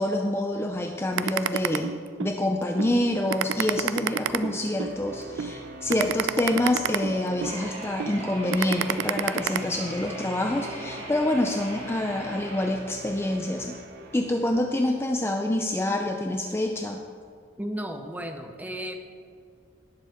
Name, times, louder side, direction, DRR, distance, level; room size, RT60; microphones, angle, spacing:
voice 1, 0.0-13.7 14.1-17.0, left 1 dB, 15° left, 3 dB, 0.5 m, -27 dB
sound 1, 1.2-2.3 2.8-2.9 3.3-4.9 5.4-5.5 5.9-7.6 8.0-8.1 8.5-9.6, right 8 dB, 80° right, 0.4 m, -27 dB
sound 2, 2.0-15.1, right 2 dB, 60° right, 0.9 m, -43 dB
sound 3, 7.4-12.7, right 1 dB, 35° right, 2.7 m, -40 dB
voice 2, 17.6-18.9, equal, 10° right, 5 dB, 0.8 m, -34 dB
19.0 x 7.2 x 3.6 m, 2.2 s
head